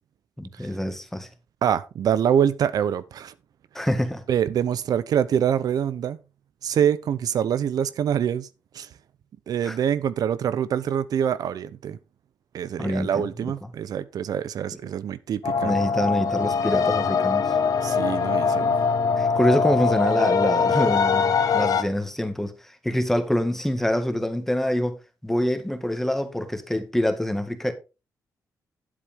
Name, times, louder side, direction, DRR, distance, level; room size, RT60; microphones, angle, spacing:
voice 1, 0.4-1.3 3.7-4.2 9.6-9.8 12.8-13.3 15.6-17.5 19.2-22.5 22.8-25.0 25.2-27.7, left 1 dB, 5° left, 1.8 m, -25 dB
voice 2, 1.6-3.3 4.3-6.2 6.6-8.5 8.7-8.9 9.5-12.0 12.5-15.7 17.8-18.7, right 9 dB, 75° right, 0.6 m, -25 dB
sound 1, 15.4-21.8, left 5 dB, 65° left, 1.2 m, -22 dB
10.0 x 8.1 x 3.6 m
cardioid pair, 105°, 7 cm